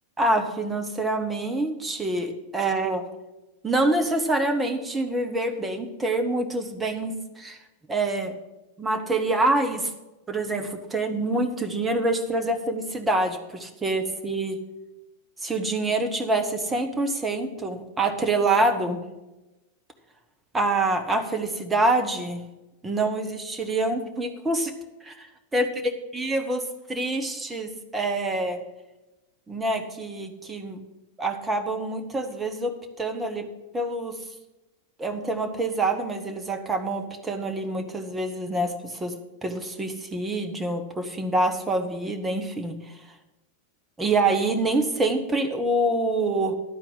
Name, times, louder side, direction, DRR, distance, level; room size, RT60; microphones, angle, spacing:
voice 1, 0.2-3.0 3.6-7.6 7.9-8.3 8.8-9.9 10.3-14.6 15.4-19.0 20.5-22.4 22.8-24.7 25.0-25.7 26.1-28.6 29.5-30.8 31.2-33.5 33.7-34.2 35.0-43.0 44.0-46.5, right 2 dB, 15° right, 5 dB, 1.2 m, -26 dB
12.0 x 4.4 x 8.0 m, 1.0 s
figure-of-eight pair, 90°, 0 cm